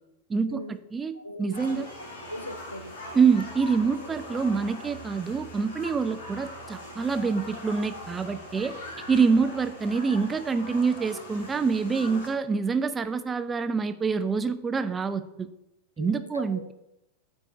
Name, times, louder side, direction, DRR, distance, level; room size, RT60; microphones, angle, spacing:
voice 1, 0.3-0.6 0.9-1.1 1.4-1.9 3.1-8.7 9.1-15.5 16.0-16.7, right 5 dB, 15° right, 11 dB, 0.5 m, -26 dB
voice 2, 1.1-1.9 2.3-3.0 16.0-16.7, equal, 85° left, 11 dB, 0.6 m, -40 dB
sound 1, 1.5-12.3, left 1 dB, 60° left, 1.7 m, -41 dB
12.5 x 4.7 x 2.6 m, 0.91 s
figure-of-eight pair, 90°, 0 cm